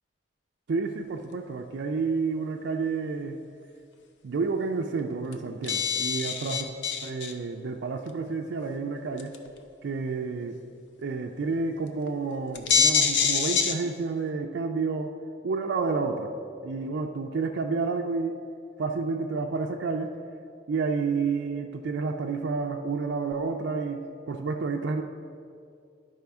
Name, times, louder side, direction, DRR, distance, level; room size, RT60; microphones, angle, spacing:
voice 1, 0.7-3.4 4.2-6.7 7.0-9.4 9.8-10.6 11.0-15.1 15.4-16.3 16.6-18.4 18.8-20.1 20.7-25.0, right 4 dB, 65° right, 2 dB, 0.4 m, -30 dB
sound 1, 5.0-5.1 5.3-5.4 5.6-7.3 8.1-8.2 9.2-9.5 11.6-11.7 12.1-12.2 12.5-13.7, left 6 dB, 65° left, 0.6 m, -24 dB
12.0 x 4.8 x 3.5 m, 2.4 s
head